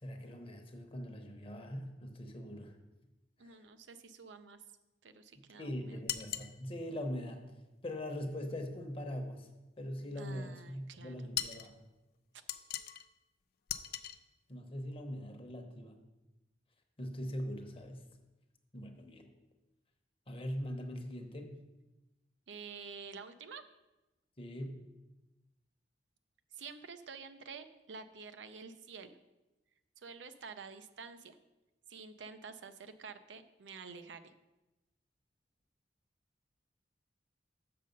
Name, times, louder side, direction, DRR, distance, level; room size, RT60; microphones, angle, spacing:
voice 1, 0.0-2.8 3.4-3.6 5.4-7.4 7.8-9.5 9.8-11.7 14.5-16.0 17.0-18.0 18.7-19.3 20.3-21.6 24.4-24.9, equal, 30° left, 5 dB, 0.9 m, -42 dB
voice 2, 3.4-4.6 5.0-6.0 10.1-11.6 22.5-23.6 26.5-29.2 30.0-31.4 31.9-34.3, right 5 dB, 90° right, 9 dB, 0.6 m, -49 dB
sound 1, 6.1-6.5 11.3-11.7 12.5-13.1 13.7-14.2, left 11 dB, 60° left, 0.4 m, -38 dB
6.8 x 6.5 x 5.3 m, 1.0 s
head